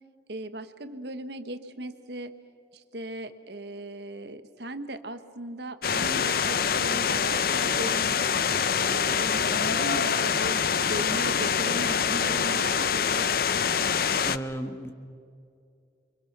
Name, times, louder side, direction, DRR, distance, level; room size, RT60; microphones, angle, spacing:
voice 1, 0.3-2.3 2.7-8.2 8.8-13.3, right 1 dB, 65° right, 10 dB, 1.2 m, -38 dB
sound 1, 5.8-14.4, left 7 dB, 50° left, 0.6 m, -25 dB
voice 2, 14.2-14.9, right 1 dB, 15° left, 7 dB, 1.3 m, -34 dB
29.0 x 24.5 x 6.0 m, 2.4 s
head